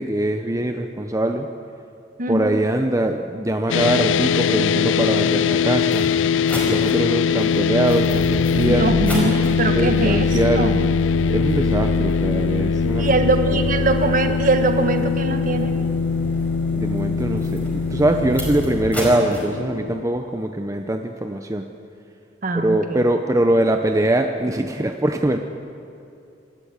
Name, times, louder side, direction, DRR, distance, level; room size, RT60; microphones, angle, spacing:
voice 1, 0.0-1.5 2.3-6.1 6.7-8.9 9.7-10.8 11.3-13.0 16.7-21.7 22.5-25.4, right 1 dB, 15° right, 5 dB, 0.8 m, -22 dB
voice 2, 2.2-2.6 8.6-10.3 10.6-10.9 13.0-15.7 22.4-23.1, right 2 dB, 45° right, 6 dB, 1.5 m, -22 dB
sound 1, 3.7-20.1, left 6 dB, 90° left, 0.4 m, -22 dB
sound 2, 5.2-5.3 5.8-19.4, equal, 10° left, 4.9 m, -29 dB
26.0 x 13.0 x 8.8 m, 2.6 s
head